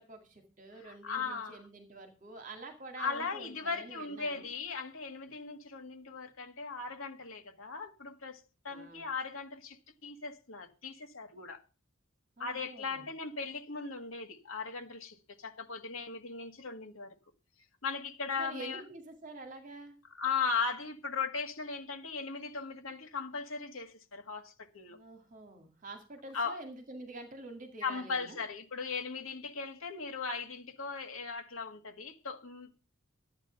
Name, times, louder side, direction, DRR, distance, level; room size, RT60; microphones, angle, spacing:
voice 1, 0.0-4.5 8.7-9.1 12.4-13.0 18.4-20.0 24.9-28.4, right 2 dB, 40° right, 2.1 m, -47 dB
voice 2, 0.8-1.6 3.0-11.6 12.4-17.1 17.8-18.8 20.1-25.0 26.3-26.6 27.8-32.7, left 5 dB, 75° left, 1.6 m, -38 dB
12.0 x 8.8 x 5.7 m
head